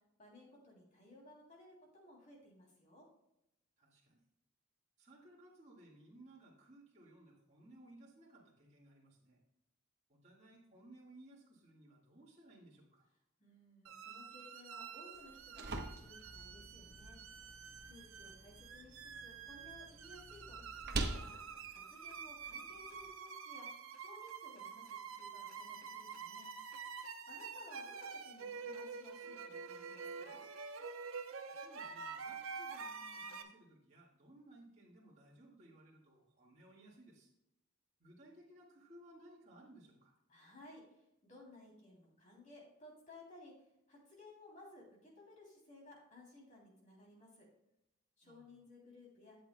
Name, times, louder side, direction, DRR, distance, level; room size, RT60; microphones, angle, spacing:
voice 1, 0.2-3.0 13.4-17.2 17.8-21.3 21.7-23.7 23.9-26.5 27.3-30.4 40.3-43.5 43.9-47.5 48.2-49.4, left 2 dB, 35° left, -2 dB, 3.0 m, -59 dB
voice 2, 3.8-4.2 5.0-9.4 10.1-13.0 18.2-18.3 31.5-37.3 38.0-40.1 48.2-48.5, right 1 dB, 35° right, -5 dB, 1.8 m, -60 dB
sound 1, 13.9-33.4, right 5 dB, 75° right, 0.8 m, -48 dB
sound 2, 15.1-23.1, right 2 dB, 50° right, 1.0 m, -46 dB
12.5 x 8.2 x 2.2 m, 0.83 s
head